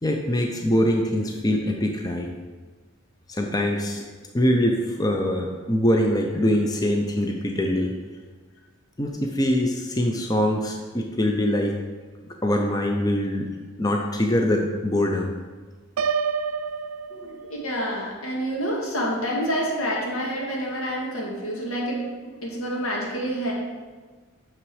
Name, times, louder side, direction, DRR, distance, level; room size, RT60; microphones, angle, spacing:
voice 1, 0.0-2.3 3.3-4.0 4.3-7.9 9.0-11.8 12.3-13.5 13.8-15.3, left 1 dB, 15° left, 2 dB, 0.5 m, -23 dB
Piano, 16.0-17.9, right 6 dB, 80° right, 0.4 m, -28 dB
voice 2, 17.1-22.1 22.4-23.5, equal, 80° left, -3 dB, 1.9 m, -28 dB
6.1 x 5.9 x 4.8 m, 1.4 s
head